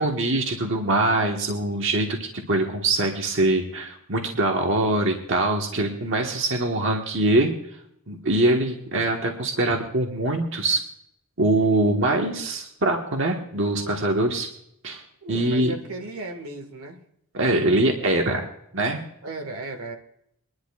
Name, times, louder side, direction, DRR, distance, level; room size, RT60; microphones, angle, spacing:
voice 1, 0.0-7.5 8.1-10.8 11.4-14.5 14.8-15.0 15.3-15.7 17.3-18.4 18.7-19.0, right 2 dB, 55° right, 2 dB, 1.4 m, -23 dB
voice 2, 15.2-17.0 19.2-20.0, right 2 dB, 80° right, 4 dB, 1.7 m, -35 dB
24.0 x 11.0 x 2.4 m, 0.74 s
head